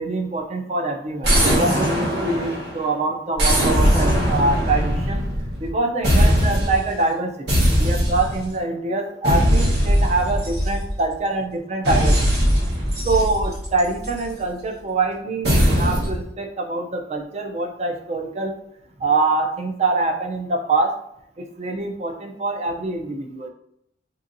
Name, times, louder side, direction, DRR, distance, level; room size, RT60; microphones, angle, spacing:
voice 1, 0.0-5.2 5.6-12.5 13.0-18.5 19.0-20.9 21.4-23.5, right 3 dB, 35° right, 4 dB, 0.4 m, -24 dB
sound 1, 1.2-2.8 3.4-5.7 6.0-6.9 7.5-8.5 9.2-11.1 11.8-14.3 15.4-16.2, equal, 70° right, 1.1 m, -20 dB
3.5 x 2.7 x 2.6 m, 0.74 s
head